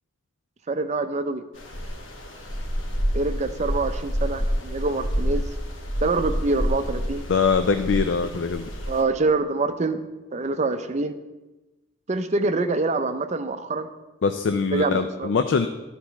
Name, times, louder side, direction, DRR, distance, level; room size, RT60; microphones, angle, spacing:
voice 1, 0.7-1.4 3.1-5.4 6.0-7.3 8.9-10.0 10.3-11.2 12.1-13.9 14.7-15.3, right 3 dB, 35° right, 9 dB, 0.5 m, -25 dB
sound 1, 1.5-9.0, equal, 85° left, 1.3 m, -28 dB
voice 2, 7.3-8.6 14.2-15.7, left 5 dB, 70° left, 8 dB, 0.4 m, -22 dB
11.5 x 4.2 x 5.8 m, 1.1 s
head